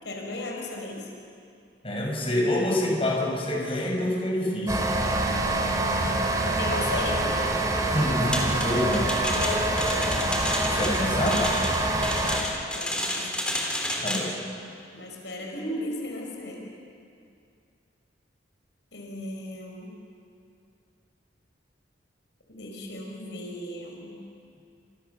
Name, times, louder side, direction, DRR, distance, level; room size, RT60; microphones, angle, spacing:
voice 1, 0.0-1.1 6.6-7.3 9.3-10.2 12.7-13.5 14.9-16.7 18.9-19.9 22.5-24.2, left 1 dB, 75° left, 0 dB, 5.0 m, -35 dB
voice 2, 1.8-4.8 7.9-9.1 10.7-11.4 14.0-14.3, left 1 dB, 35° left, -1 dB, 5.7 m, -26 dB
sound 1, 4.7-12.4, right 1 dB, 20° right, 3.1 m, -26 dB
sound 2, 8.3-14.4, left 1 dB, 5° left, 3.3 m, -31 dB
29.0 x 27.0 x 7.0 m, 2.5 s
head